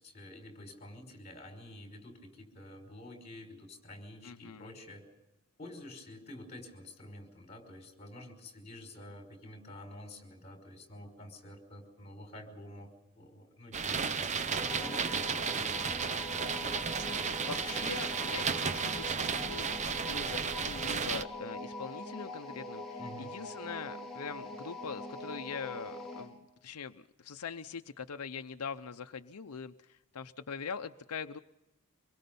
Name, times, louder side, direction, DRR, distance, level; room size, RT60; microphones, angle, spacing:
voice 1, 0.0-5.1 5.6-12.9 13.2-16.0 23.0-23.3, left 1 dB, 30° left, 4 dB, 5.3 m, -49 dB
voice 2, 4.2-4.7 17.4-31.4, left 6 dB, 85° left, 8 dB, 0.7 m, -43 dB
sound 1, 13.7-21.2, right 6 dB, 30° right, 0.7 m, -33 dB
sound 2, 14.5-26.3, left 1 dB, ahead, 4.3 m, -43 dB
26.0 x 22.0 x 5.4 m, 0.95 s
head